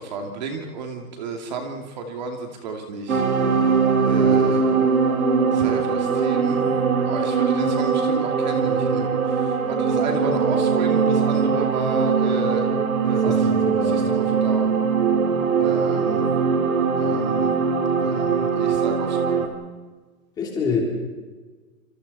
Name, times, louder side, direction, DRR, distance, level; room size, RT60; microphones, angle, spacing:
voice 1, 0.0-3.2 4.0-4.6 5.5-6.7 7.0-12.7 13.0-13.5 13.8-14.7 15.6-16.3 17.0-17.5 18.0-19.5, right 4 dB, 30° right, 3 dB, 2.5 m, -32 dB
sound 1, 3.1-19.5, right 5 dB, 70° right, 4.3 m, -21 dB
voice 2, 4.2-4.6 13.2-14.1 20.4-20.8, left 5 dB, 10° left, -1 dB, 3.4 m, -27 dB
28.5 x 27.0 x 4.2 m, 1.3 s
hypercardioid pair, 175°, 43 cm